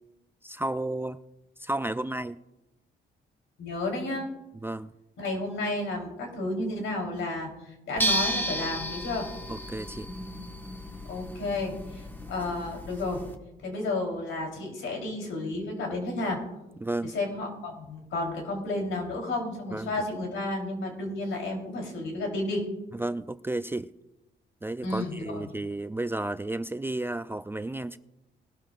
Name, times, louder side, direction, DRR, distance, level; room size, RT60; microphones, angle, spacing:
voice 1, 0.4-1.2 1.6-2.4 4.6-4.9 9.5-10.1 16.8-17.1 19.7-19.9 22.9-23.9 24.6-28.0, right 2 dB, 10° right, 12 dB, 0.4 m, -32 dB
voice 2, 3.6-4.3 5.2-7.5 7.9-9.3 11.1-13.2 13.6-16.4 17.0-22.6 24.8-25.5, left 2 dB, 80° left, 1 dB, 3.7 m, -32 dB
sound 1, 8.0-13.4, equal, 10° left, 1.4 m, -33 dB
21.0 x 12.5 x 2.5 m, 0.95 s
cardioid pair, 90°, 20 cm